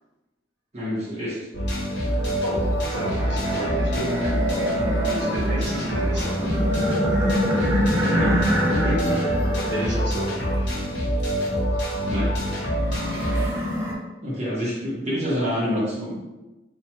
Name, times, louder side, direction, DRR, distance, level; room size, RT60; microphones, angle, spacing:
voice 1, 0.7-1.5 5.4-5.9 7.5-9.2 12.1-12.3 14.2-16.2, equal, 35° right, -6 dB, 0.8 m, -28 dB
sound 1, 1.5-13.5, equal, 75° left, 0.8 m, -25 dB
sound 2, 1.9-13.9, equal, 15° right, 0.4 m, -27 dB
voice 2, 2.4-6.5 9.6-10.8 12.9-13.3, right 2 dB, 70° right, -6 dB, 1.1 m, -33 dB
2.9 x 2.1 x 2.8 m, 1.1 s
head